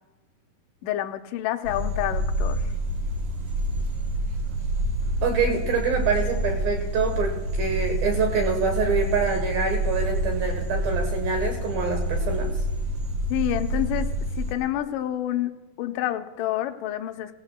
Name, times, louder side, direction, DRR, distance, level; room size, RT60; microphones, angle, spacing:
voice 1, 0.8-2.7 13.3-14.1 14.4-15.5 15.8-17.3, left 13 dB, 80° left, 6 dB, 1.9 m, -28 dB
sound 1, 1.6-14.6, right 1 dB, 55° right, 1.6 m, -27 dB
voice 2, 5.2-12.5, right 5 dB, 70° right, 3 dB, 2.8 m, -26 dB
19.0 x 17.0 x 2.2 m, 1.2 s
omnidirectional pair, 4.6 m